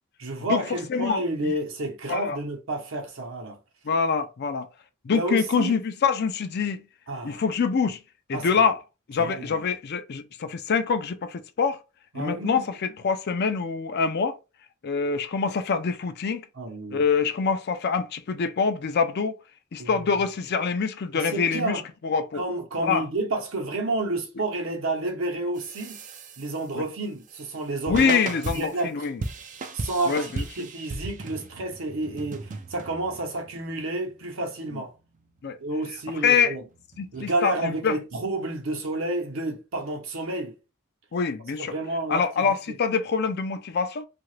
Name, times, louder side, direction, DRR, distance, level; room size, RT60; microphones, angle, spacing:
voice 1, 0.2-3.6 5.1-5.8 7.1-7.4 8.3-8.7 9.2-9.6 12.1-12.7 16.5-17.0 19.8-20.1 21.1-21.8 22.3-26.0 26.4-29.1 29.7-34.9 35.6-36.6 37.1-40.5 41.6-42.8, right 2 dB, 65° right, 0.9 m, -30 dB
voice 2, 0.9-1.5 2.1-2.4 3.8-4.7 5.0-6.8 7.2-8.0 8.3-8.8 9.1-11.8 12.1-14.4 14.8-16.4 16.9-19.3 19.7-22.4 22.8-23.0 26.8-26.9 27.9-29.2 30.1-30.4 35.4-35.6 36.2-36.5 37.0-38.0 41.1-41.7 42.1-44.1, left 5 dB, 50° left, 0.4 m, -25 dB
sound 1, 25.6-26.8 27.2-37.3, right 3 dB, 35° right, 0.4 m, -37 dB
2.8 x 2.4 x 3.1 m
head